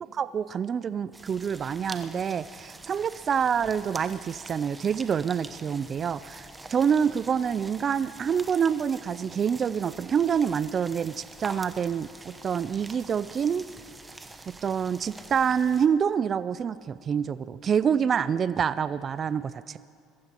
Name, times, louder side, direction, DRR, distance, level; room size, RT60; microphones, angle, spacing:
voice 1, 0.1-12.1 12.4-13.7 14.5-19.8, right 7 dB, 40° right, 15 dB, 0.3 m, -27 dB
sound 1, 1.1-15.9, right 2 dB, 15° right, 0.9 m, -46 dB
22.0 x 14.5 x 3.0 m, 2.5 s
supercardioid pair, 100°, 0 cm